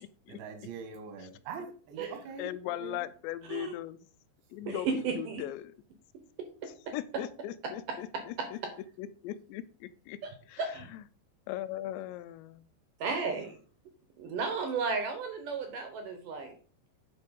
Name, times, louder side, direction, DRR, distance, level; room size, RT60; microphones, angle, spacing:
voice 1, 0.3-2.5 2.8-3.0, right 5 dB, 85° right, 3.9 m, -43 dB
voice 2, 2.4-4.1 4.5-5.7 6.6-8.6 9.0-10.2 10.5-10.6 11.5-12.6, left 13 dB, 85° left, 2.8 m, -39 dB
voice 3, 4.7-5.4 6.4-6.5 6.9-7.0 8.1-8.5 10.2-10.3 10.6-10.9 13.0-13.6 14.2-16.5, right 5 dB, 70° right, 2.1 m, -34 dB
9.2 x 5.4 x 5.2 m
omnidirectional pair, 5.1 m